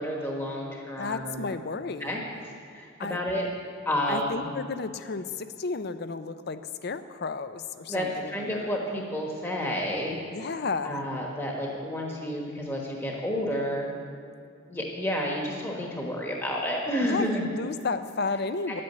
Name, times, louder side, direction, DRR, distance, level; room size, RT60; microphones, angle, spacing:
voice 1, 0.0-1.5 2.0-2.2 2.6-3.5 3.8-4.5 7.9-10.2 10.8-13.9 14.7-17.4 18.7-18.8, equal, 10° left, -1 dB, 1.2 m, -30 dB
voice 2, 1.0-2.1 3.0-3.2 4.1-8.7 10.3-11.0 17.0-18.8, left 4 dB, 55° left, 12 dB, 0.6 m, -32 dB
11.5 x 8.6 x 8.0 m, 2.4 s
head